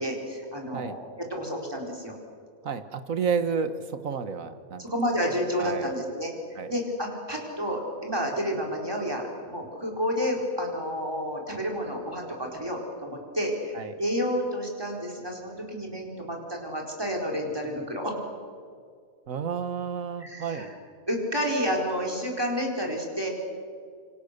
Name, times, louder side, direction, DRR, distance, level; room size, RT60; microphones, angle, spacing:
voice 1, 0.0-2.2 4.8-6.4 6.7-18.1 20.2-20.7 21.1-23.3, equal, 15° right, 0 dB, 4.4 m, -30 dB
voice 2, 2.6-4.9 5.6-5.9 6.6-6.7 13.7-13.9 19.3-20.7, right 6 dB, 70° right, 10 dB, 1.8 m, -31 dB
27.5 x 24.5 x 6.7 m, 2.2 s
omnidirectional pair, 1.5 m